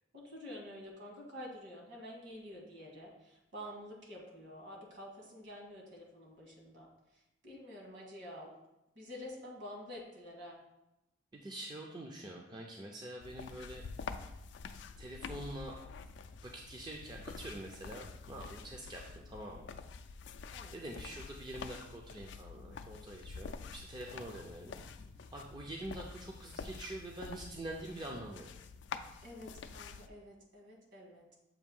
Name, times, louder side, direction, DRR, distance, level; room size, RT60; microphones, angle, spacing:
voice 1, 0.1-6.9 7.4-8.5 9.0-10.6 15.2-15.4 20.5-20.7 29.2-31.4, left 1 dB, 60° right, -1 dB, 1.7 m, -49 dB
voice 2, 11.3-13.8 15.0-15.7 16.4-19.7 20.7-24.8 25.3-28.5, right 1 dB, 20° right, -1 dB, 0.5 m, -45 dB
sound 1, 13.2-30.1, left 5 dB, 60° left, 0.4 m, -47 dB
7.2 x 2.7 x 5.3 m, 0.90 s
head